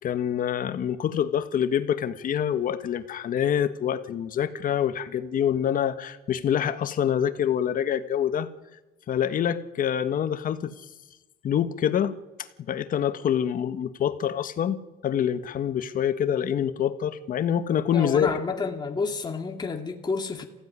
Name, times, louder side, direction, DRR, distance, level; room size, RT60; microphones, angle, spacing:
voice 1, 0.0-8.5 9.1-10.8 11.4-12.2 12.7-18.4, left 9 dB, 55° left, 11 dB, 1.6 m, -26 dB
voice 2, 17.9-20.4, left 4 dB, 25° left, 3 dB, 2.3 m, -30 dB
25.5 x 16.0 x 9.8 m, 1.1 s
cardioid pair, 110°, 17 cm